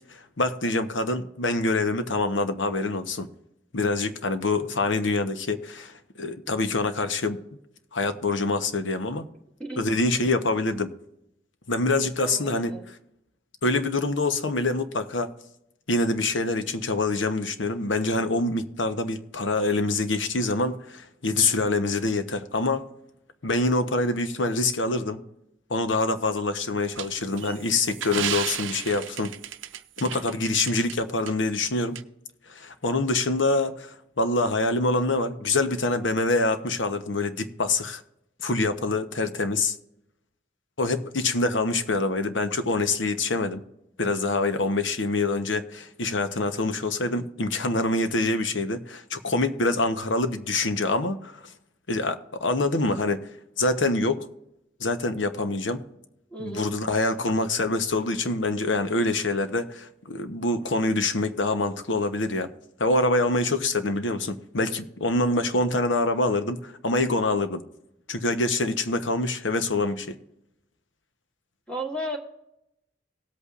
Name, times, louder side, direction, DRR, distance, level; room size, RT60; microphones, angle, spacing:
voice 1, 0.1-3.3 3.7-7.4 7.9-9.3 9.8-10.9 11.7-12.7 13.6-15.3 15.9-22.9 23.4-25.2 25.7-29.3 30.0-32.0 32.5-38.0 38.4-39.7 40.8-43.6 44.0-51.4 51.9-53.3 53.6-54.3 54.8-55.8 56.4-62.5 62.8-67.6 68.1-70.2, left 2 dB, 80° left, 1.0 m, -25 dB
voice 2, 9.6-9.9 12.0-12.9 56.3-56.7 71.7-72.2, right 1 dB, 5° left, 1.3 m, -34 dB
sound 1, 27.0-31.0 31.3-31.4 32.0-32.1, right 10 dB, 90° right, 0.6 m, -33 dB
18.5 x 8.3 x 2.5 m
head